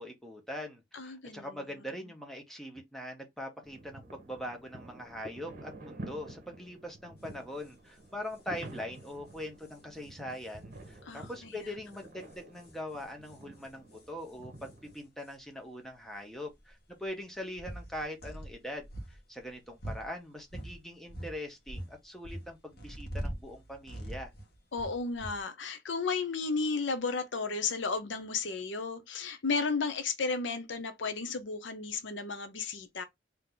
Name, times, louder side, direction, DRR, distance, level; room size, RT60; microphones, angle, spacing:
voice 1, 0.0-24.3, left 1 dB, ahead, 1.1 m, -42 dB
voice 2, 0.9-1.8 11.1-11.5 24.7-33.0, left 4 dB, 80° left, 0.7 m, -34 dB
sound 1, 3.6-15.0, right 1 dB, 50° right, 1.2 m, -49 dB
sound 2, 7.2-7.3 7.6-7.7 8.0-8.1 8.3-15.4 16.1-16.2 16.5-20.8 21.1-25.4, right 1 dB, 55° left, 1.4 m, -44 dB
3.7 x 3.0 x 3.8 m
head